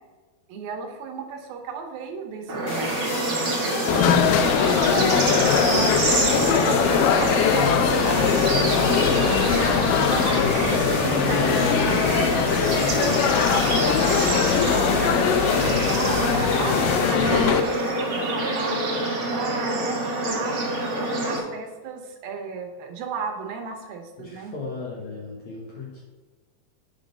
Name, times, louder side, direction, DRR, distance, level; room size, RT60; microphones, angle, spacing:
voice 1, 0.5-3.0 3.4-5.6 6.1-8.5 9.1-13.2 13.5-14.7 15.0-15.2 15.6-20.6 20.9-24.5, right 5 dB, 75° right, 3 dB, 2.6 m, -35 dB
Bird / Insect / Frog, 2.5-21.4, right 1 dB, 55° right, 1.4 m, -26 dB
sound 1, 2.7-18.7, left 1 dB, 50° left, 3.3 m, -31 dB
sound 2, 3.9-17.6, left 8 dB, 85° left, 1.9 m, -22 dB
voice 2, 24.2-26.0, left 3 dB, 65° left, -3 dB, 2.0 m, -36 dB
9.2 x 3.8 x 5.3 m, 1.4 s
omnidirectional pair, 4.5 m